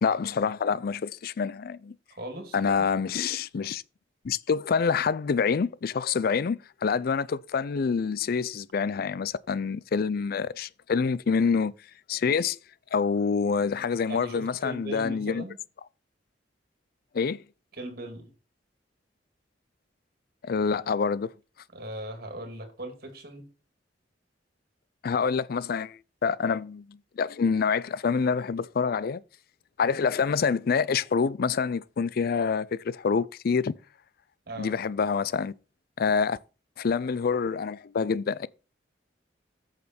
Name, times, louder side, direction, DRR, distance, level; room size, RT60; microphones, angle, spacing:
voice 1, 0.0-1.9 2.5-3.8 4.2-11.7 12.1-12.6 12.9-15.4 17.1-17.4 20.4-21.3 25.0-29.2 29.8-33.7 34.6-35.5 36.0-36.4 36.8-38.5, left 5 dB, 55° left, 0.4 m, -26 dB
voice 2, 2.1-2.9 14.1-15.6 17.7-18.3 21.7-23.5 34.5-34.8, right 1 dB, 55° right, 2.3 m, -39 dB
8.5 x 6.6 x 4.3 m
head